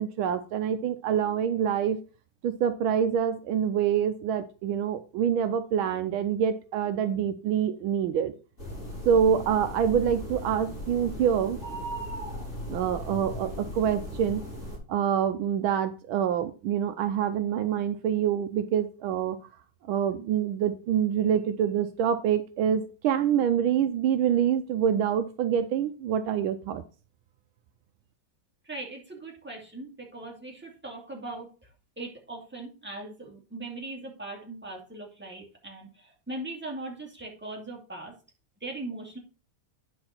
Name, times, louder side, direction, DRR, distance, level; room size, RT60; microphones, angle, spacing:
voice 1, 0.0-2.0 2.4-8.3 9.1-11.6 12.7-14.4 14.9-19.4 19.9-26.8, right 8 dB, 75° right, 10 dB, 1.4 m, -26 dB
sound 1, 8.6-14.8, equal, 30° left, 4.8 m, -37 dB
voice 2, 28.7-31.5 32.0-38.1 38.6-39.2, right 2 dB, 5° right, -1 dB, 2.1 m, -39 dB
9.7 x 5.9 x 4.3 m, 0.34 s
omnidirectional pair, 2.3 m